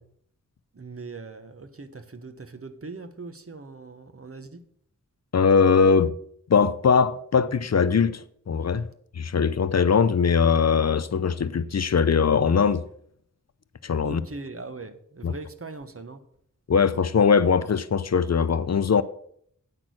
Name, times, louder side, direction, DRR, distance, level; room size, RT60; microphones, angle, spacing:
voice 1, 0.7-4.6 14.0-16.2, right 3 dB, 45° right, 1.1 m, -40 dB
voice 2, 5.3-6.2 6.5-8.9 9.2-12.8 13.8-14.2 15.2-15.3 16.7-19.0, left 6 dB, 50° left, 0.5 m, -21 dB
8.8 x 6.1 x 6.3 m
wide cardioid pair, 50°, 33 cm